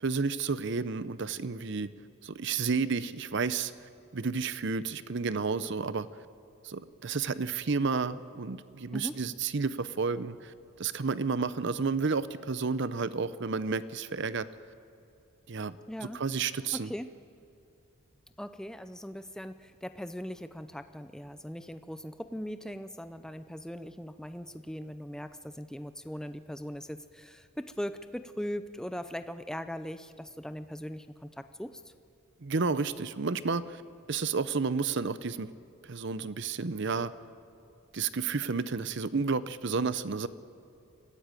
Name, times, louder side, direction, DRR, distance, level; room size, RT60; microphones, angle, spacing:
voice 1, 0.0-1.9 2.2-3.7 4.1-6.1 6.6-14.5 15.5-16.9 32.4-33.8 34.1-35.5 35.9-37.1 37.9-40.3, right 4 dB, 55° right, 15 dB, 0.7 m, -31 dB
voice 2, 15.9-16.2 16.7-17.1 18.4-31.9, equal, 5° left, 10 dB, 0.4 m, -40 dB
24.0 x 15.0 x 9.0 m, 2.7 s
head